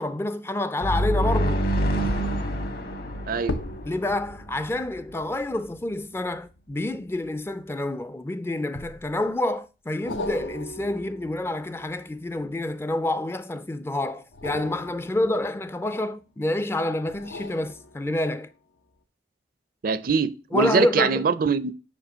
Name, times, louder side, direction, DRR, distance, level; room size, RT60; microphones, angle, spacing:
voice 1, 0.0-1.6 3.8-18.5 20.5-21.3, left 1 dB, 15° left, 0.3 m, -28 dB
sound 1, 0.8-4.5, equal, 55° left, 1.3 m, -26 dB
sound 2, 2.2-2.5 3.4-8.1 8.8-9.4 10.1-13.0 14.2-16.3 17.1-18.5 19.0-19.1, left 1 dB, 90° left, 0.7 m, -40 dB
voice 2, 3.3-3.6 19.8-21.7, right 5 dB, 50° right, 0.4 m, -23 dB
5.2 x 4.8 x 6.1 m
head